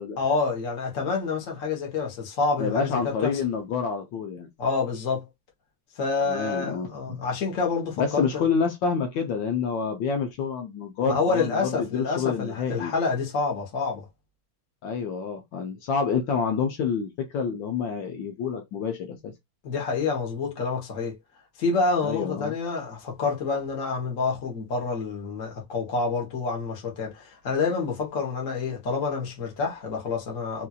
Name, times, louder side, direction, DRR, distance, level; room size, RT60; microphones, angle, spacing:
voice 1, 0.2-3.4 4.6-5.3 5.9-8.4 11.0-14.1 19.6-21.2 21.6-30.7, left 4 dB, 45° left, 1.4 m, -28 dB
voice 2, 2.6-4.5 6.3-7.2 8.0-12.9 14.8-19.3 22.0-22.5, left 6 dB, 75° left, 1.4 m, -28 dB
4.3 x 2.5 x 2.4 m
omnidirectional pair, 2.1 m